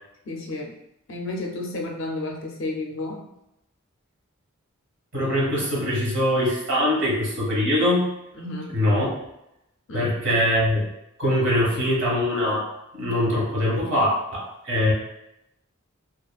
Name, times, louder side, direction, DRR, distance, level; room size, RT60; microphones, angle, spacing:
voice 1, 0.2-0.7 1.1-3.2 8.3-8.8 9.9-10.1, left 2 dB, 55° left, 1 dB, 0.5 m, -31 dB
voice 2, 5.1-8.1 8.7-9.1 9.9-10.9 11.2-12.7 12.9-14.9, left 1 dB, 55° right, -4 dB, 1.1 m, -22 dB
2.9 x 2.4 x 2.3 m, 0.84 s
head